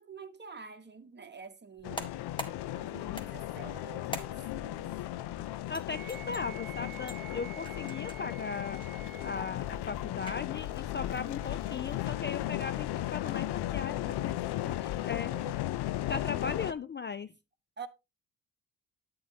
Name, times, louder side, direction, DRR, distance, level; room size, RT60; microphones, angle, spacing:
voice 1, 0.0-2.2 2.7-4.9 15.1-15.6 17.8-17.9, right 5 dB, 25° right, 1.1 m, -48 dB
sound 1, 1.7-13.5, equal, 10° left, 1.8 m, -48 dB
sound 2, 1.8-16.7, left 14 dB, 80° left, 0.6 m, -36 dB
voice 2, 5.7-8.8 9.2-14.4 14.6-15.3 16.1-17.3, left 5 dB, 30° left, 0.4 m, -38 dB
Wind instrument woodwind instrument, 5.9-9.6, right 10 dB, 55° right, 0.8 m, -49 dB
8.8 x 8.5 x 2.7 m
supercardioid pair, 60°, 39 cm